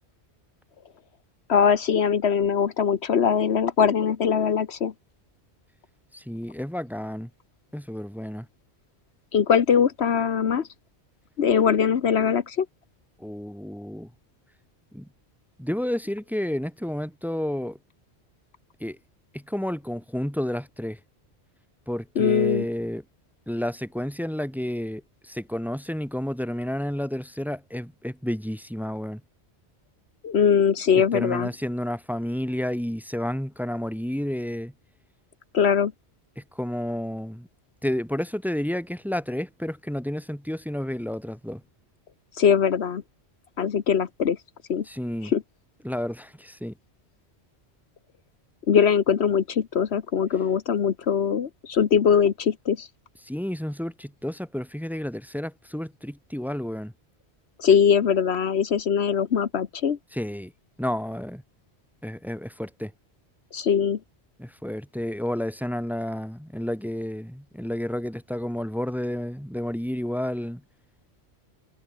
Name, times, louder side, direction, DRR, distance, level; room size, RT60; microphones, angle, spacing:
voice 1, 1.5-4.9 9.3-10.7 11.4-12.7 22.2-22.6 30.2-31.5 35.5-35.9 42.4-43.0 43.6-44.4 44.7-44.8 45.2-45.4 48.7-52.9 57.6-60.0 63.5-64.0, left 7 dB, 70° left, 1.3 m, -21 dB
voice 2, 6.1-7.3 7.7-8.5 13.2-14.1 14.9-15.1 15.6-17.8 18.8-19.0 19.3-21.0 21.9-23.0 23.5-29.2 31.1-34.7 36.4-37.5 37.8-41.6 44.8-45.3 45.8-46.7 53.2-56.9 60.1-60.5 60.8-61.4 62.0-62.9 64.4-70.6, equal, ahead, 1.9 m, -31 dB
omnidirectional pair, 1.1 m